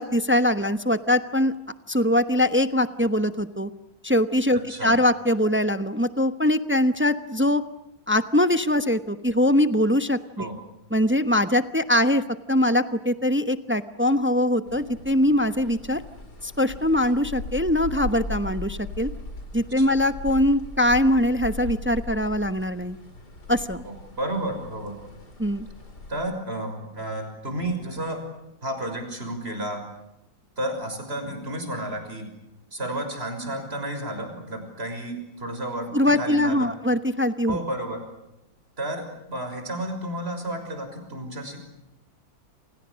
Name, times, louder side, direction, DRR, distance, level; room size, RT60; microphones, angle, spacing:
voice 1, 0.0-1.5 1.9-3.7 4.0-7.6 8.1-10.5 10.9-12.2 12.5-16.0 16.4-19.1 19.5-23.0 23.5-23.8 25.4-25.7 35.9-37.6, left 1 dB, 10° right, 10 dB, 0.5 m, -22 dB
voice 2, 4.5-4.9 10.4-10.5 19.8-19.9 23.8-25.0 26.1-28.2 28.6-29.8 30.6-32.3 32.7-36.7 37.5-38.0 38.8-41.6, right 1 dB, 30° right, 6 dB, 6.3 m, -32 dB
sound 1, 14.7-26.1, left 2 dB, 55° left, 4.9 m, -38 dB
29.5 x 27.5 x 6.4 m, 0.92 s
omnidirectional pair, 2.1 m